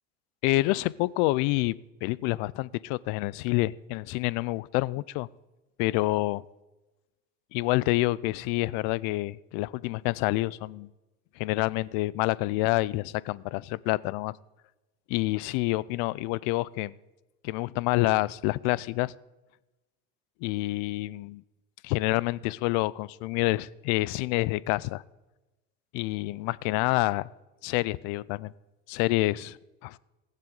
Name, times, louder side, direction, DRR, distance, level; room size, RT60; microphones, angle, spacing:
voice 1, 0.4-1.7 2.0-5.3 5.8-6.4 7.5-10.9 11.4-14.3 15.1-16.9 17.4-19.1 20.4-21.4 21.8-25.0 25.9-27.3 27.6-28.5 28.9-30.0, left 20 dB, 70° left, 22 dB, 0.5 m, -27 dB
19.0 x 7.4 x 3.9 m, 1.1 s
supercardioid pair, 105°, 30 cm